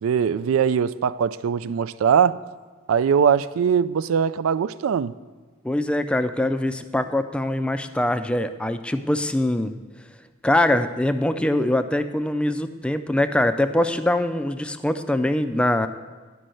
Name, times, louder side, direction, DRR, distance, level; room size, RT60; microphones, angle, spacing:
voice 1, 0.0-2.4 2.9-5.1, right 7 dB, 90° right, 0.3 m, -21 dB
voice 2, 5.6-9.7 10.4-15.9, left 1 dB, 5° left, 0.3 m, -23 dB
11.5 x 5.4 x 7.6 m
head